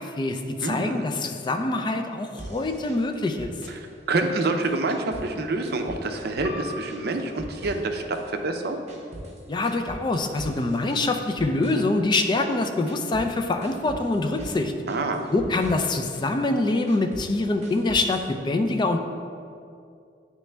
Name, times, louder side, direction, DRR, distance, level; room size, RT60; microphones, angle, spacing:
voice 1, 0.0-3.5 9.5-14.7 15.3-19.0, left 2 dB, 25° left, 5 dB, 0.4 m, -25 dB
voice 2, 0.6-1.0 3.8-8.8 14.9-15.3, right 2 dB, 60° right, 4 dB, 0.5 m, -27 dB
sound 1, 2.4-5.4 5.6-6.6 6.9-8.3 8.6-13.3 13.6-14.6 14.9-16.2 16.6-18.3, right 1 dB, 40° right, 0.8 m, -41 dB
sound 2, 6.4-11.6, left 2 dB, 85° left, 0.9 m, -45 dB
9.2 x 3.1 x 3.3 m, 2.4 s
head